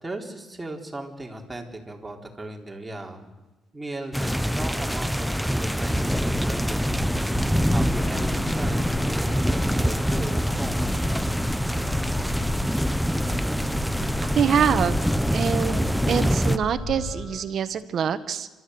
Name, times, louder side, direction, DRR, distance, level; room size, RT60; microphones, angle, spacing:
voice 1, 0.0-3.3 3.7-7.4 7.7-10.9, right 2 dB, 15° right, 1 dB, 3.6 m, -37 dB
sound 1, 4.1-16.6, equal, ahead, 0.7 m, -25 dB
sound 2, 6.9-17.3, left 3 dB, 30° left, 5.2 m, -35 dB
sound 3, 8.0-17.4, left 2 dB, 50° left, 3.4 m, -46 dB
voice 2, 14.3-15.0 15.3-18.5, right 8 dB, 60° right, 11 dB, 1.4 m, -25 dB
30.0 x 13.0 x 7.9 m, 1.1 s
cardioid pair, 90°, 0 cm